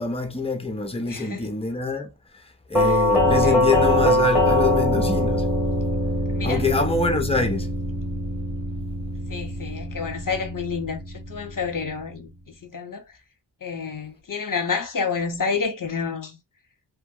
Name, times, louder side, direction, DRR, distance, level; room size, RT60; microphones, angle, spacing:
voice 1, 0.0-2.1 2.7-5.5 6.4-7.7, left 3 dB, 15° left, 0.6 m, -25 dB
voice 2, 1.0-1.5 2.8-3.0 3.4-3.7 6.3-6.6 9.3-13.0 13.6-16.4, left 5 dB, 50° left, 0.8 m, -29 dB
Doorbell, 2.7-11.6, left 1 dB, 5° right, 1.1 m, -23 dB
2.9 x 2.2 x 3.6 m
wide cardioid pair, 95°, 43 cm